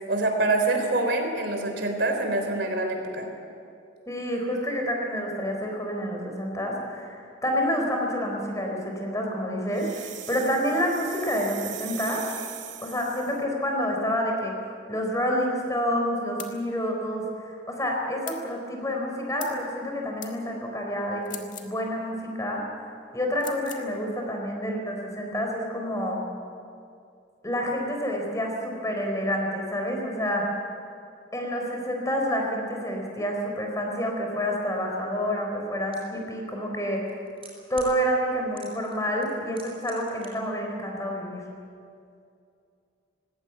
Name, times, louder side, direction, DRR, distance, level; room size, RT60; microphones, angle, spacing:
voice 1, 0.1-3.3, right 2 dB, 60° right, 4 dB, 3.6 m, -25 dB
voice 2, 4.1-12.3 12.8-14.6 14.9-22.6 23.1-26.2 27.4-30.5 31.3-37.0 37.7-41.4, equal, 15° left, 1 dB, 4.0 m, -28 dB
sound 1, 9.7-13.4, right 12 dB, 80° right, 1.9 m, -40 dB
sound 2, 16.4-16.6 18.3-18.4 19.4-19.6 20.2-20.4 21.2-21.7 23.4-23.9, left 10 dB, 45° left, 1.9 m, -40 dB
sound 3, 35.9-36.0 37.0-37.9 38.6-39.0 39.2-40.3 40.5-40.6, right 5 dB, 30° right, 6.8 m, -45 dB
19.5 x 17.0 x 9.1 m, 2.5 s
head